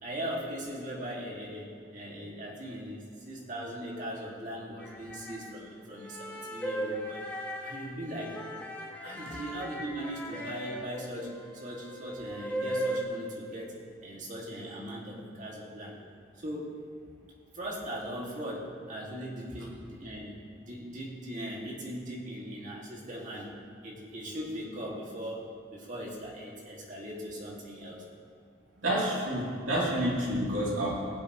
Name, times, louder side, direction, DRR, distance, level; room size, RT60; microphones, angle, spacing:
voice 1, 0.0-7.2 7.6-8.4 9.0-16.0 16.4-16.8 17.5-23.5 23.8-28.0, equal, 40° right, -3 dB, 2.3 m, -39 dB
sound 1, 4.8-5.5 6.0-13.0, right 1 dB, 10° left, 1.4 m, -37 dB
voice 2, 28.8-31.1, right 1 dB, 75° right, -6 dB, 3.1 m, -29 dB
21.0 x 7.7 x 3.1 m, 2.2 s
head